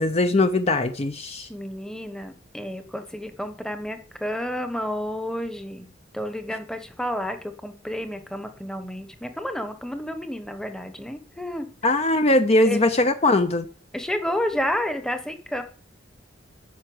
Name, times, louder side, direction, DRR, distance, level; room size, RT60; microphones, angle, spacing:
voice 1, 0.0-1.5 11.8-13.7, left 2 dB, 35° left, 9 dB, 0.7 m, -20 dB
voice 2, 1.5-5.9 6.1-11.7 12.7-12.9 13.9-15.6, left 1 dB, 5° left, 8 dB, 1.0 m, -30 dB
9.6 x 5.7 x 7.8 m, 0.43 s
head